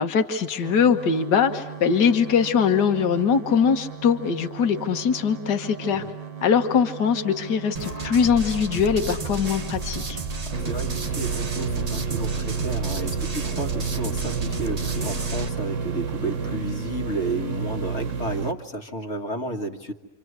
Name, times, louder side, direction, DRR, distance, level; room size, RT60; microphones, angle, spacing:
voice 1, 0.0-6.0 6.4-10.2, left 6 dB, 70° left, 6 dB, 1.9 m, -22 dB
sound 1, 0.6-16.6, right 9 dB, 80° right, 1.8 m, -39 dB
sound 2, 7.8-15.5, right 3 dB, 25° right, 1.0 m, -32 dB
sound 3, 10.5-18.5, right 5 dB, 50° right, 1.4 m, -30 dB
voice 2, 10.7-19.9, right 1 dB, 40° left, 3 dB, 1.9 m, -32 dB
27.5 x 26.5 x 8.1 m, 1.1 s
omnidirectional pair, 1.9 m